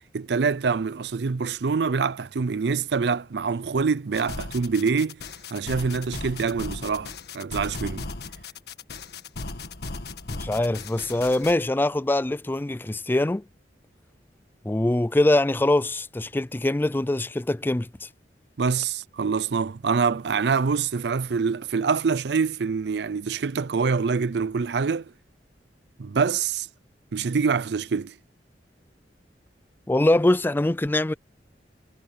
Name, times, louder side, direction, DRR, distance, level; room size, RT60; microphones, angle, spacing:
voice 1, 0.1-5.2 5.5-8.1 18.6-25.1 26.0-26.7 27.1-28.1, right 5 dB, 70° right, 0.5 m, -25 dB
sound 1, 4.1-11.5, left 3 dB, 65° left, 1.6 m, -37 dB
voice 2, 10.3-13.4 14.6-18.1 29.9-31.1, left 1 dB, 10° left, 0.4 m, -23 dB
head